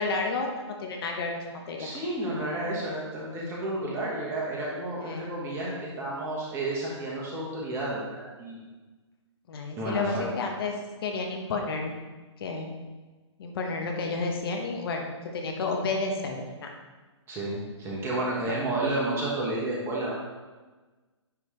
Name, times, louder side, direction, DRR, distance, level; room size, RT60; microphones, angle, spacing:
voice 1, 0.0-1.9 5.0-5.3 9.5-11.9 12.4-12.7 13.4-15.1 15.3-16.7 18.5-18.6, left 3 dB, 50° left, 2 dB, 1.0 m, -31 dB
voice 2, 1.8-8.6 9.7-10.3 17.3-20.1, right 1 dB, 15° right, -5 dB, 1.2 m, -31 dB
9.6 x 3.2 x 3.2 m, 1.3 s
hypercardioid pair, 150°, 16 cm